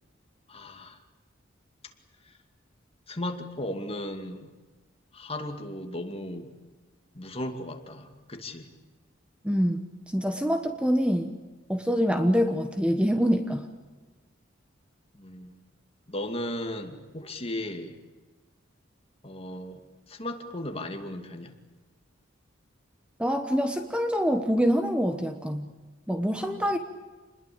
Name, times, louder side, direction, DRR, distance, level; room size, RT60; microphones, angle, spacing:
voice 1, 0.5-1.0 3.1-4.5 5.1-6.5 7.1-8.7 15.1-15.5 16.1-17.9 19.2-19.8 20.1-21.5 26.4-26.6, left 1 dB, 30° left, 5 dB, 2.4 m, -36 dB
voice 2, 9.4-11.3 11.7-13.7 23.2-25.7 26.1-26.8, equal, 5° right, 7 dB, 1.2 m, -25 dB
28.0 x 21.0 x 8.8 m, 1.3 s
head